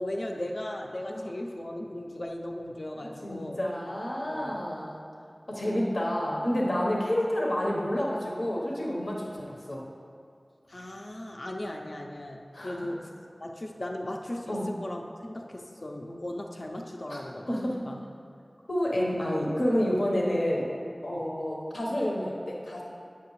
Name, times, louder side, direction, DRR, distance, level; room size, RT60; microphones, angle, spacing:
voice 1, 0.0-3.6 4.2-4.6 9.4-9.5 10.7-13.1 13.4-17.6 17.8-18.0 21.1-21.3, left 1 dB, 65° left, 1 dB, 0.5 m, -37 dB
voice 2, 3.0-5.0 5.5-9.8 12.5-12.9 14.5-14.7 17.1-17.8 18.7-20.7 21.0-22.8, equal, 90° left, -3 dB, 1.0 m, -29 dB
8.4 x 5.8 x 3.1 m, 2.4 s
wide cardioid pair, 40°, 0 cm